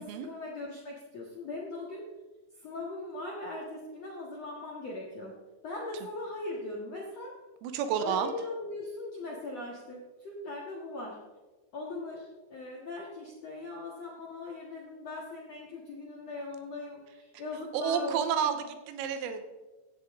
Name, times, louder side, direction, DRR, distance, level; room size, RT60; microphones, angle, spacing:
voice 1, 0.0-2.0 2.6-5.3 5.6-7.3 8.0-11.2 11.7-18.5, left 2 dB, 75° left, -3 dB, 1.5 m, -40 dB
voice 2, 7.6-8.3 17.7-19.4, right 8 dB, 90° right, 8 dB, 3.7 m, -30 dB
16.5 x 11.0 x 3.7 m, 1.2 s
omnidirectional pair, 6.0 m